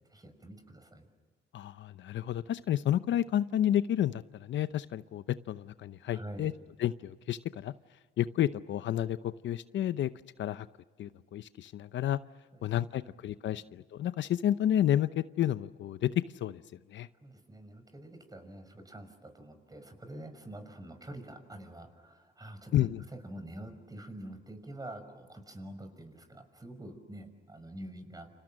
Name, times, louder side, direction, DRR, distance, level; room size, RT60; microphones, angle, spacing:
voice 1, 0.1-1.1 6.1-6.5 12.5-13.0 13.5-13.6 17.2-28.3, right 1 dB, 20° right, 8 dB, 5.9 m, -46 dB
voice 2, 1.5-6.5 6.8-7.7 8.2-10.1 10.4-10.7 11.0-12.2 12.6-16.6 16.9-17.1 22.7-23.0, left 11 dB, 70° left, 13 dB, 0.8 m, -30 dB
29.5 x 28.0 x 6.5 m, 1.4 s
cardioid pair, 90°, 20 cm